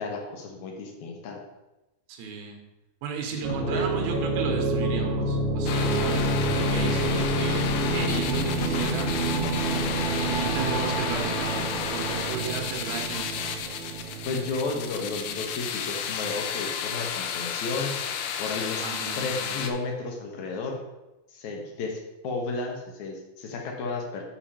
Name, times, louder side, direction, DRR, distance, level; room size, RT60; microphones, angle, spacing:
voice 1, 0.0-1.4 3.3-4.1 14.2-18.9 19.2-20.8 21.3-24.2, left 3 dB, 60° left, 1 dB, 2.2 m, -33 dB
voice 2, 2.1-2.6 3.0-7.7 7.9-9.1 10.2-13.3 18.8-19.5, right 6 dB, 85° right, 3 dB, 3.1 m, -34 dB
sound 1, 3.4-16.1, right 2 dB, 55° right, 1.6 m, -28 dB
sound 2, 4.8-7.4 7.9-10.6, right 3 dB, 70° right, 3.2 m, -47 dB
sound 3, 5.7-19.7, left 7 dB, 85° left, 2.7 m, -32 dB
7.1 x 5.4 x 5.6 m, 1.0 s
omnidirectional pair, 4.3 m